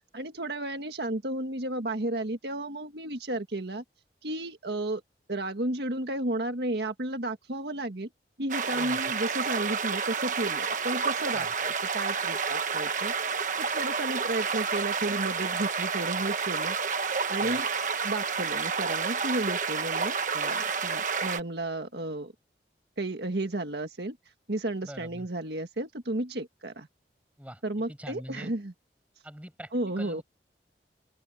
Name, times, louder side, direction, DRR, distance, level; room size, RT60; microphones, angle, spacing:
voice 1, 0.0-3.8 4.2-5.0 5.3-8.1 8.4-13.1 13.6-17.7 18.0-22.3 23.0-24.2 24.5-26.9 27.6-28.7 29.7-30.2, right 1 dB, 70° right, 1.7 m, -33 dB
sound 1, 8.5-21.4, right 5 dB, 45° right, 1.3 m, -30 dB
voice 2, 8.7-9.1 11.3-11.5 17.4-17.6 24.8-25.3 27.4-27.6 27.9-28.5 29.2-30.2, equal, 10° right, 5.8 m, -44 dB
open air
head